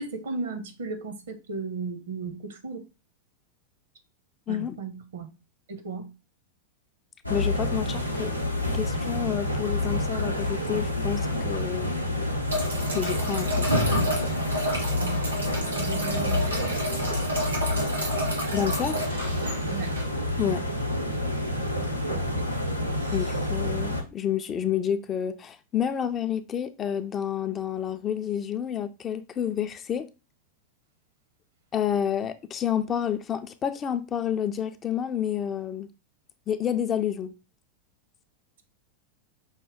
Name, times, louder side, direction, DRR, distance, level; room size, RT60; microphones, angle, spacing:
voice 1, 0.0-2.9 4.5-5.3 5.7-6.1 15.0-15.4 15.8-16.8 19.7-20.0 22.0-22.5 23.0-23.2, right 4 dB, 65° right, 0.8 m, -35 dB
sound 1, 7.2-24.0, left 1 dB, 90° left, 0.6 m, -28 dB
voice 2, 7.3-8.4 8.7-11.9 12.9-13.7 18.5-19.1 20.4-20.6 23.1-30.1 31.7-35.9 36.5-37.3, left 9 dB, 25° left, 0.4 m, -29 dB
sound 2, 12.5-20.0, equal, 85° right, 1.5 m, -32 dB
5.4 x 2.2 x 3.5 m
figure-of-eight pair, 90°, 0 cm